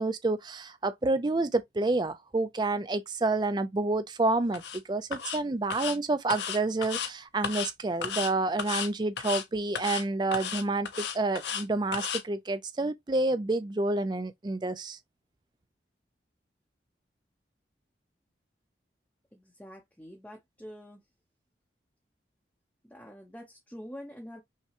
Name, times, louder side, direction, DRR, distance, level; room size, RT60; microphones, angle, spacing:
voice 1, 0.0-15.0, right 2 dB, 25° right, 0.4 m, -29 dB
sound 1, 4.5-4.8 5.1-5.4 5.7-6.0 6.3-7.1 7.4-7.7 8.0-8.3 8.6-8.9 9.2-9.4 9.7-10.0 10.3-11.6 11.9-12.2, left 7 dB, 75° left, 0.7 m, -34 dB
voice 2, 19.3-21.0 22.8-24.4, equal, 10° left, 0.7 m, -46 dB
5.6 x 2.2 x 2.9 m
head